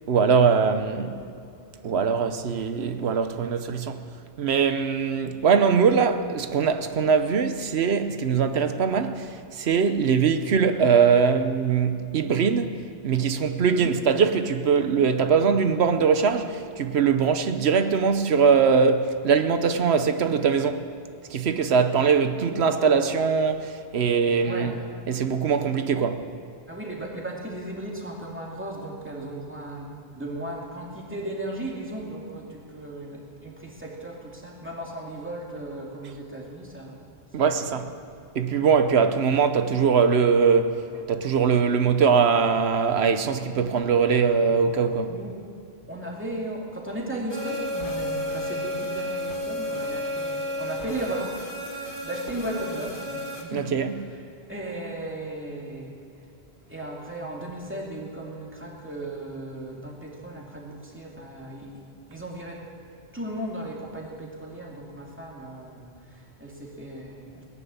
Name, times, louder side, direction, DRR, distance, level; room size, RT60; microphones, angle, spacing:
voice 1, 0.1-1.3 1.8-4.0 4.4-20.8 21.3-24.7 25.1-26.3 37.3-37.9 38.3-40.8 41.1-45.2 53.5-53.9, right 6 dB, 70° right, 1.1 m, -22 dB
voice 2, 24.4-24.8 26.7-37.1 37.5-37.9 45.1-45.4 45.9-51.4 51.7-54.2 54.5-56.0 56.7-61.8 62.1-62.7 63.1-67.4, right 1 dB, 10° right, 2.6 m, -36 dB
sound 1, 47.3-53.4, left 1 dB, 50° left, 2.0 m, -32 dB
18.0 x 11.0 x 7.1 m
omnidirectional pair, 1.1 m